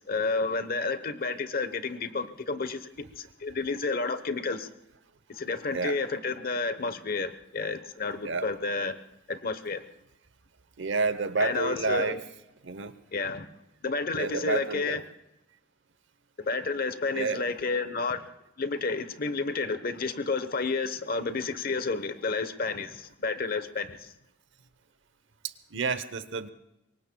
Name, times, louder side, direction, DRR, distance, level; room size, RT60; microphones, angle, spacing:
voice 1, 0.0-2.9 3.2-4.7 5.3-9.0 9.3-9.8 11.4-12.2 13.1-13.5 13.8-15.0 16.4-18.3 18.6-24.1, left 3 dB, 50° left, 11 dB, 1.0 m, -30 dB
voice 2, 5.7-6.0 8.2-8.5 10.8-12.3 12.6-13.0 14.2-15.0 17.1-17.5 25.4-26.5, right 4 dB, 70° right, 13 dB, 0.9 m, -30 dB
26.0 x 23.0 x 2.3 m, 0.90 s
head